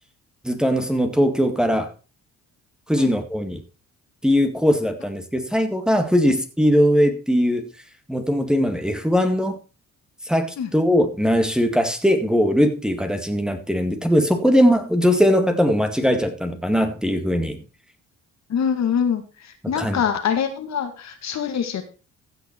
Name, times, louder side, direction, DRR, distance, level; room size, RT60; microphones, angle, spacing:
voice 1, 0.4-1.9 2.9-3.6 4.2-7.7 8.1-9.6 10.3-17.6 19.6-20.0, equal, ahead, 1.9 m, -20 dB
voice 2, 18.5-19.2 19.7-21.8, left 7 dB, 65° left, 2.1 m, -24 dB
15.5 x 5.9 x 4.6 m
cardioid pair, 90°, 30 cm